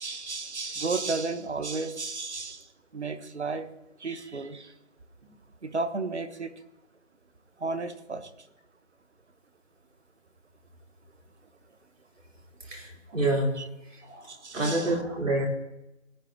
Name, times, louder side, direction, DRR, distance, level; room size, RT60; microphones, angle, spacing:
voice 1, 0.0-2.6 2.9-3.7 4.0-4.7 5.6-6.5 7.6-8.3 13.6-13.7 14.3-14.9, right 3 dB, 60° right, 10 dB, 1.1 m, -33 dB
voice 2, 12.7-13.6 13.9-15.5, right 1 dB, 85° right, -2 dB, 4.0 m, -28 dB
17.0 x 10.0 x 2.9 m, 0.93 s
figure-of-eight pair, 175°, 38 cm